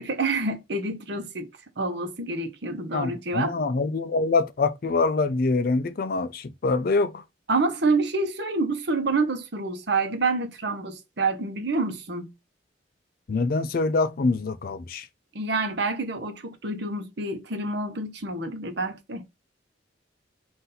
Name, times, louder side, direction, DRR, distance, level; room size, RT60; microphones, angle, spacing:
voice 1, 0.0-1.5 1.8-3.5 7.5-12.3 15.3-19.3, right 3 dB, 60° right, 0.9 m, -27 dB
voice 2, 2.9-7.2 13.3-15.1, left 3 dB, 50° left, 0.4 m, -25 dB
4.1 x 2.6 x 3.9 m
head